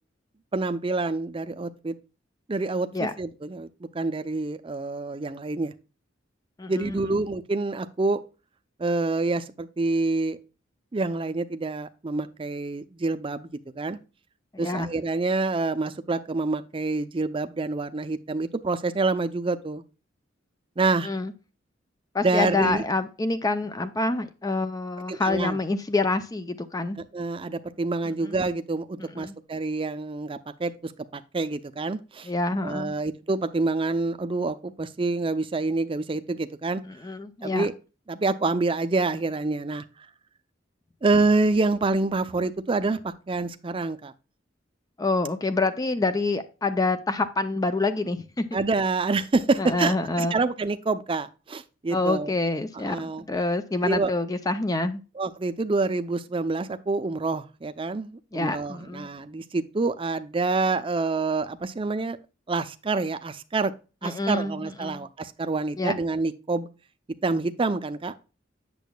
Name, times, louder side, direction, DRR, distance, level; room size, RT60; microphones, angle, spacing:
voice 1, 0.5-2.0 2.5-3.7 3.9-5.7 6.7-8.2 8.8-10.4 10.9-14.0 14.6-19.8 20.8-21.1 22.2-22.8 25.1-25.6 27.0-32.3 32.6-36.8 37.4-37.7 38.1-39.8 41.0-44.1 48.5-52.3 52.7-53.2 53.8-54.1 55.2-62.2 62.5-63.7 64.0-66.7 67.2-68.1, right 3 dB, 30° right, 0.5 m, -27 dB
voice 2, 6.6-7.0 14.5-14.9 21.0-21.3 22.1-27.0 28.2-28.4 29.2-29.3 32.2-32.9 36.8-37.7 45.0-48.5 49.6-50.3 51.9-55.0 58.3-59.1 64.0-65.1 65.8-66.0, left 3 dB, 20° left, 0.5 m, -27 dB
8.3 x 6.9 x 2.2 m
head